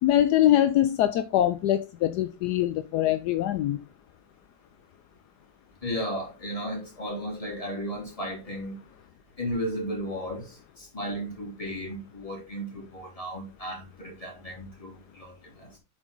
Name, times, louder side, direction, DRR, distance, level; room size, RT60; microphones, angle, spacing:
voice 1, 0.0-3.8, left 12 dB, 75° left, 1.0 m, -23 dB
voice 2, 5.8-8.8 9.4-15.8, equal, 15° left, 3.6 m, -35 dB
8.2 x 5.2 x 3.8 m
omnidirectional pair, 2.2 m